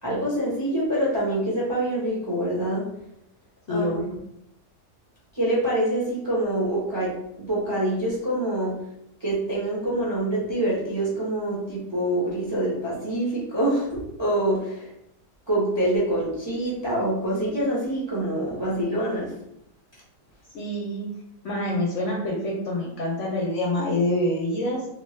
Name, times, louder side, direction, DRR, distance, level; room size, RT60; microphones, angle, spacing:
voice 1, 0.0-2.8 3.7-4.0 5.3-8.8 9.2-14.9 15.5-19.3, right 1 dB, 20° right, -6 dB, 0.8 m, -25 dB
voice 2, 3.7-4.1 20.5-21.1 21.4-24.9, left 1 dB, 60° left, -2 dB, 0.8 m, -26 dB
3.1 x 2.7 x 3.2 m, 0.78 s
omnidirectional pair, 1.7 m